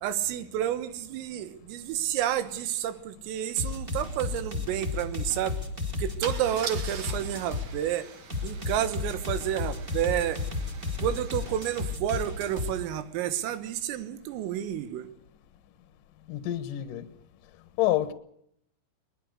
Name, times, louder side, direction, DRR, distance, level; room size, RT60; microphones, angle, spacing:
voice 1, 0.0-5.6 6.0-8.1 8.4-10.5 11.0-15.1, right 11 dB, 85° right, 4.1 m, -30 dB
sound 1, 3.6-7.7 8.3-12.7, left 4 dB, 15° right, 2.1 m, -33 dB
Car / Engine starting / Idling, 3.6-3.7 4.0-4.2 6.2-11.9, right 6 dB, 60° right, 2.0 m, -43 dB
voice 2, 16.3-17.1 17.8-18.1, left 14 dB, 65° left, 2.2 m, -27 dB
22.0 x 21.0 x 6.6 m
omnidirectional pair, 5.8 m